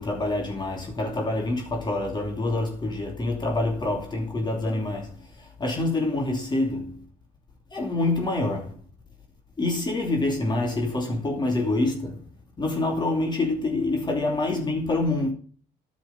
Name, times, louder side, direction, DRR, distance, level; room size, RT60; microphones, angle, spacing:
voice 1, 0.0-7.0 7.7-8.8 9.6-12.2 12.6-15.3, left 2 dB, 25° left, 2.9 m, -26 dB
10.0 x 7.1 x 7.0 m
cardioid pair, 110°, 17 cm